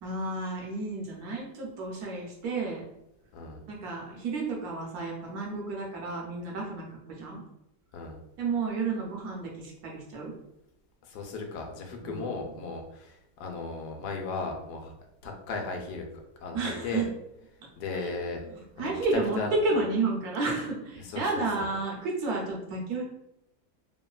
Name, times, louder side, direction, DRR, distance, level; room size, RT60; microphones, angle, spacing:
voice 1, 0.0-2.8 3.7-6.9 7.2-7.4 8.4-10.3 12.0-12.4 16.5-17.1 17.9-18.1 18.8-23.0, right 3 dB, 75° right, -1 dB, 1.1 m, -31 dB
voice 2, 11.1-14.9 15.2-16.0 16.4-17.1 17.8-18.4 18.8-18.9 19.4-19.8 21.0-21.7, left 3 dB, 80° left, 2 dB, 1.1 m, -36 dB
3.1 x 2.2 x 2.2 m, 0.84 s
omnidirectional pair, 1.7 m